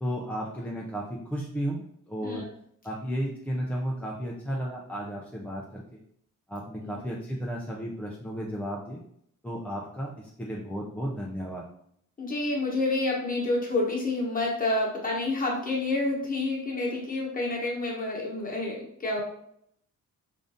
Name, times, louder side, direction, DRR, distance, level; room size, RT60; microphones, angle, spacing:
voice 1, 0.0-2.5 2.8-6.0 6.5-9.0 9.4-11.6, equal, 5° left, -3 dB, 0.4 m, -33 dB
voice 2, 12.2-19.2, left 2 dB, 25° left, -3 dB, 1.2 m, -28 dB
3.7 x 2.6 x 3.5 m, 0.70 s
cardioid pair, 135°, 33 cm